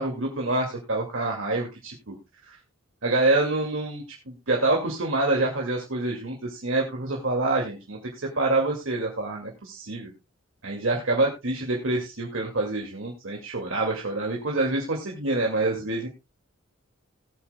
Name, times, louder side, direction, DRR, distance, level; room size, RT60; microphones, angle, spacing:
voice 1, 0.0-2.1 2.5-2.6 3.0-8.0 8.3-10.1 10.6-16.1, right 2 dB, 65° right, 0 dB, 2.2 m, -26 dB
19.0 x 8.7 x 2.2 m, 0.23 s
head